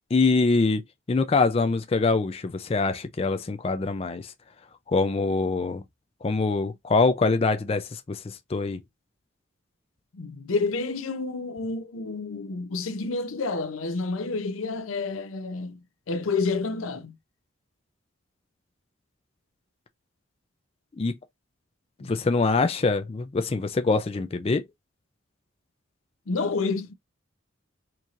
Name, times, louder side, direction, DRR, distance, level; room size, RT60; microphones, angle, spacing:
voice 1, 0.1-4.3 4.9-5.8 6.2-8.8 21.0-21.1 22.0-24.6, left 3 dB, 30° left, 0.4 m, -24 dB
voice 2, 10.1-15.8 16.1-17.2 22.0-22.1 26.3-26.9, left 3 dB, 85° left, 0.6 m, -29 dB
4.5 x 2.8 x 2.4 m
head